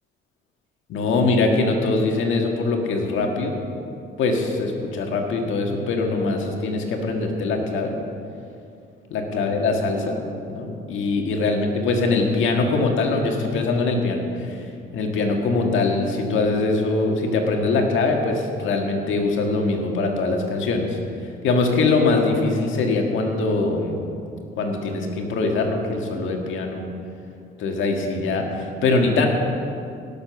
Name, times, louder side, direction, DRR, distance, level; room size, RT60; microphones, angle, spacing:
voice 1, 0.9-3.6 4.2-8.0 9.1-10.2 10.5-24.0 24.6-26.9 27.6-29.3, left 3 dB, 80° left, 2 dB, 1.8 m, -22 dB
17.5 x 7.0 x 5.9 m, 2.5 s
cardioid pair, 90°, 20 cm